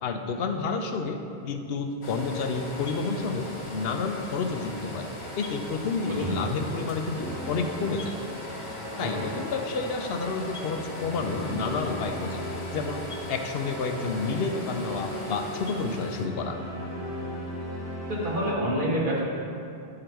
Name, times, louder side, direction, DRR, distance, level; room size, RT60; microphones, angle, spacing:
voice 1, 0.0-1.2 1.4-5.1 5.4-8.2 9.0-12.4 12.7-16.6, left 4 dB, 70° left, 5 dB, 0.8 m, -30 dB
sound 1, 2.0-16.3, left 1 dB, 30° left, 0.8 m, -40 dB
voice 2, 6.0-6.4 9.0-9.3 18.1-19.2, equal, 55° right, -6 dB, 1.6 m, -28 dB
sound 2, 7.1-18.5, equal, 15° right, 1.5 m, -38 dB
9.8 x 3.8 x 4.5 m, 2.6 s
omnidirectional pair, 1.1 m